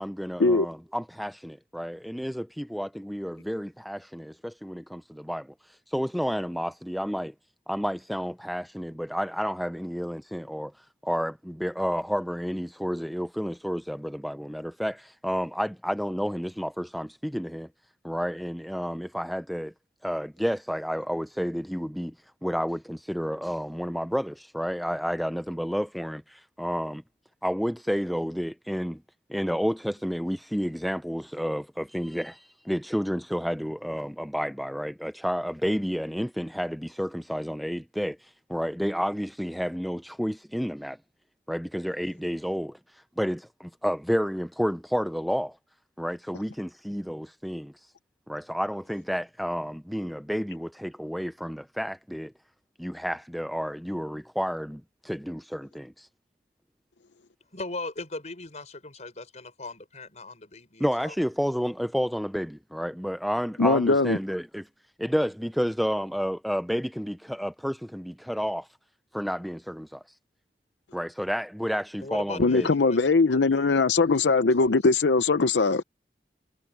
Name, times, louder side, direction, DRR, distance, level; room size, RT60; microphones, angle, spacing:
voice 1, 0.0-7.3 7.7-17.7 18.0-19.7 20.0-22.1 22.4-27.0 27.4-29.0 29.3-41.0 41.5-45.6 46.0-47.9 48.3-52.3 52.8-56.1 60.8-64.7 65.0-68.7 69.1-70.0 70.9-72.7, equal, ahead, 0.4 m, -30 dB
voice 2, 57.5-61.1 72.0-74.8, left 2 dB, 40° left, 5.0 m, -40 dB
voice 3, 63.6-64.2 72.4-75.8, left 3 dB, 90° left, 0.7 m, -21 dB
head